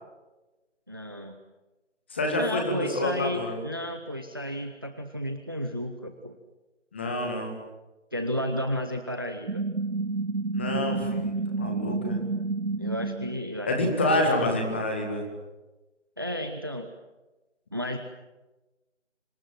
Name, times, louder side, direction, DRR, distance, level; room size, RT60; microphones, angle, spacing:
voice 1, 0.9-1.4 2.4-6.4 8.1-9.6 12.8-14.6 16.2-16.9 17.7-18.0, equal, 20° right, 7 dB, 1.0 m, -32 dB
voice 2, 2.1-3.6 6.9-7.5 10.5-12.2 13.7-15.3, left 1 dB, 10° left, 2 dB, 2.1 m, -28 dB
sound 1, 9.5-13.4, right 3 dB, 70° right, 1.1 m, -29 dB
28.5 x 26.0 x 7.7 m, 1.1 s
figure-of-eight pair, 170°, 36 cm